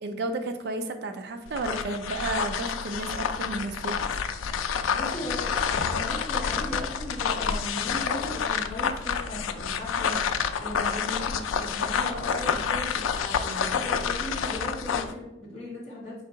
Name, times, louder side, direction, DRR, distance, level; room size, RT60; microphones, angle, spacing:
voice 1, 0.0-4.2, right 2 dB, 55° right, 6 dB, 0.4 m, -32 dB
sound 1, 1.5-15.1, left 6 dB, 85° left, 0.3 m, -29 dB
voice 2, 4.9-16.2, left 1 dB, 35° left, -4 dB, 1.6 m, -37 dB
4.6 x 2.7 x 3.8 m, 0.88 s
head